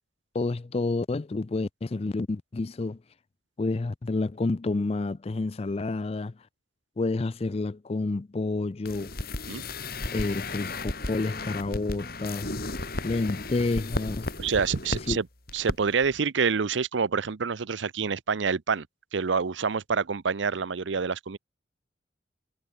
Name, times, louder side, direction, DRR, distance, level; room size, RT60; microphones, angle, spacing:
voice 1, 0.3-3.0 3.6-6.3 7.0-9.1 10.1-12.5 13.0-14.3 15.1-15.2, left 3 dB, 35° left, 0.4 m, -29 dB
sound 1, 8.9-15.2 15.5-15.8 16.0-16.1, left 2 dB, 55° left, 3.3 m, -34 dB
voice 2, 14.4-15.3 15.5-18.9 19.1-21.4, right 5 dB, 90° right, 0.7 m, -27 dB
head